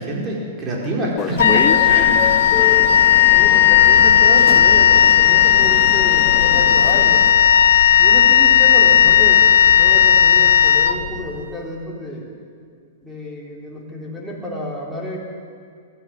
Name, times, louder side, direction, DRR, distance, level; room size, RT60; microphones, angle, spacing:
voice 1, 0.0-2.4 2.7-2.8, right 1 dB, 20° right, -2 dB, 4.7 m, -25 dB
sound 1, 1.2-7.3, left 9 dB, 25° left, 0.9 m, -29 dB
Wind instrument woodwind instrument, 1.4-11.5, left 9 dB, 85° left, 0.9 m, -13 dB
voice 2, 3.3-7.5 8.0-12.3 13.0-15.2, equal, ahead, -4 dB, 3.5 m, -30 dB
21.5 x 13.5 x 9.2 m, 2.2 s
hypercardioid pair, 150°, 0 cm